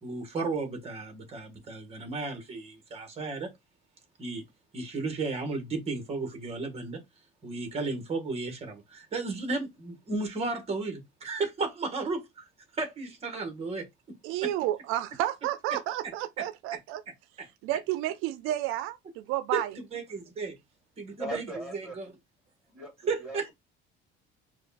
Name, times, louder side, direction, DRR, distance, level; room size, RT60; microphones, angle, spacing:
voice 1, 0.0-3.5 4.2-4.4 4.7-7.0 7.4-12.5 12.7-13.9 14.4-14.5 15.7-15.8 16.4-16.5 19.5-19.6 19.9-20.5 21.0-22.1 23.1-23.5, right 3 dB, 30° right, 1.6 m, -34 dB
voice 2, 14.2-17.0 17.6-19.7, right 13 dB, 80° right, 0.6 m, -31 dB
voice 3, 21.2-22.0 22.7-22.9 23.2-23.5, right 1 dB, 5° right, 2.3 m, -38 dB
4.9 x 2.4 x 4.2 m
cardioid pair, 160°, 21 cm